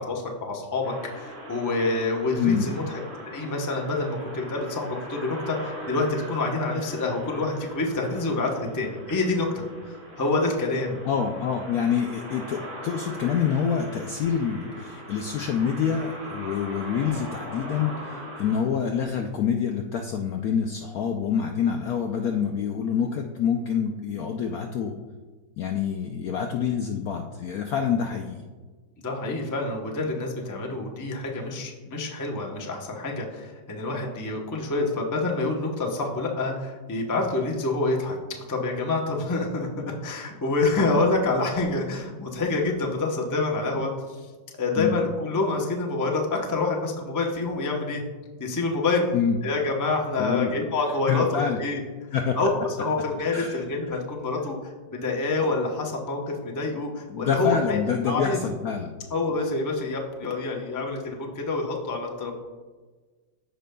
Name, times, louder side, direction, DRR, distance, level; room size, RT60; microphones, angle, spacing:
voice 1, 0.0-3.0 3.3-11.0 29.0-43.9 44.6-48.0 48.4-49.0 49.4-51.3 51.6-51.8 52.4-57.8 58.1-58.5 59.1-62.3, left 3 dB, 30° left, -1 dB, 0.3 m, -27 dB
sound 1, 0.8-18.6, right 1 dB, 60° right, 2.7 m, -41 dB
voice 2, 11.0-24.9 25.6-28.4 44.8-44.9 49.1-49.4 50.2-50.6 51.1-51.6 52.1-52.4 53.3-54.0 57.1-58.9, left 7 dB, 75° left, 4 dB, 0.8 m, -26 dB
14.5 x 5.1 x 2.2 m, 1.3 s
omnidirectional pair, 2.1 m